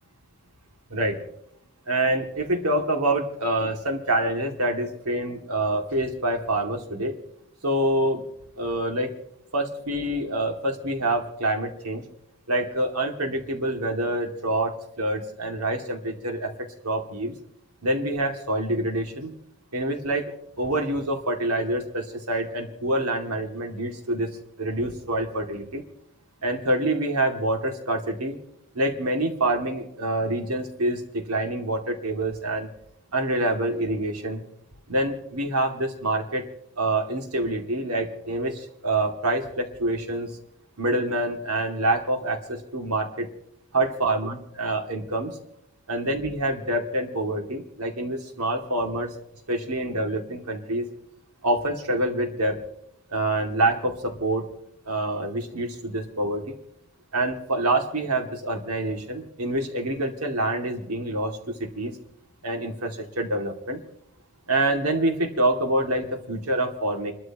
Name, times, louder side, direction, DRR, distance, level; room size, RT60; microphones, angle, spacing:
voice 1, 1.9-7.1 7.6-8.2 8.6-9.1 9.5-12.0 12.5-16.5 16.8-17.3 17.8-19.3 19.7-24.3 24.6-25.8 26.4-28.4 28.7-32.7 33.1-34.4 34.9-36.5 36.8-40.3 40.8-43.3 43.7-45.4 45.9-49.1 49.5-50.9 51.4-52.6 53.1-54.5 54.9-56.5 57.1-61.4 61.7-61.9 62.4-63.8 64.5-67.1, right 1 dB, 85° right, 3 dB, 2.5 m, -26 dB
29.5 x 13.0 x 3.0 m, 0.75 s
head